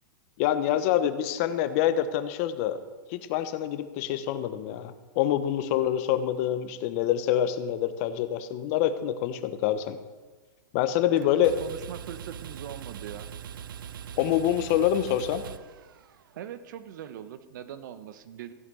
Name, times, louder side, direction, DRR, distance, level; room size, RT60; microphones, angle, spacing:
voice 1, 0.4-2.8 3.1-10.0 10.7-11.6 14.2-15.4, left 11 dB, 45° left, 11 dB, 1.0 m, -26 dB
sound 1, 11.2-16.3, right 8 dB, 80° right, 0.6 m, -42 dB
voice 2, 11.6-13.3 16.3-18.5, right 10 dB, 60° right, 12 dB, 1.1 m, -41 dB
15.0 x 8.3 x 6.3 m, 1.3 s
hypercardioid pair, 145°, 11 cm